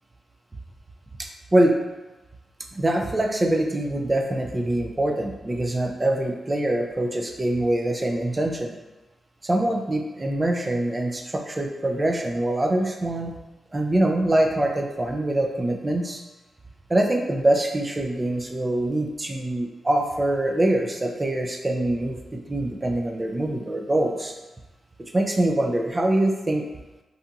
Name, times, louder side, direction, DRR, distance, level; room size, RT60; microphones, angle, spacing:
voice 1, 1.2-1.8 2.7-8.7 9.4-13.3 13.7-16.2 16.9-24.3 25.1-26.6, right 1 dB, 30° right, 3 dB, 0.4 m, -24 dB
2.7 x 2.5 x 2.3 m, 1.1 s
supercardioid pair, 50°, 0 cm